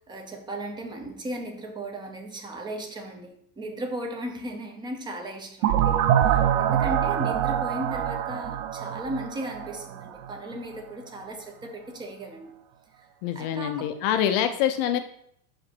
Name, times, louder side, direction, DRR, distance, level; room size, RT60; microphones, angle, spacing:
voice 1, 0.1-6.0 6.3-12.5 13.4-13.9, right 1 dB, 10° right, 3 dB, 0.6 m, -36 dB
sound 1, 5.6-10.3, right 10 dB, 85° right, 0.8 m, -25 dB
voice 2, 13.2-15.0, left 10 dB, 45° left, 9 dB, 0.5 m, -25 dB
5.2 x 5.1 x 5.9 m, 0.68 s
supercardioid pair, 170°, 44 cm